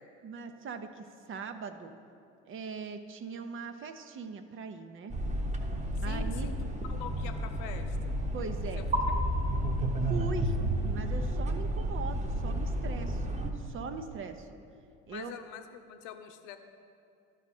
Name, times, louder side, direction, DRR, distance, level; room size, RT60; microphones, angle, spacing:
voice 1, 0.2-2.0 2.5-5.1 6.0-6.5 8.3-8.8 10.1-10.6 10.8-14.6 15.1-15.3, right 5 dB, 40° right, 8 dB, 0.7 m, -41 dB
sound 1, 5.1-13.5, right 1 dB, 25° right, 1.0 m, -31 dB
voice 2, 6.0-8.2 8.8-9.2 15.1-16.6, left 8 dB, 70° left, 7 dB, 0.7 m, -45 dB
12.5 x 4.9 x 4.2 m, 2.5 s
hypercardioid pair, 65°, 31 cm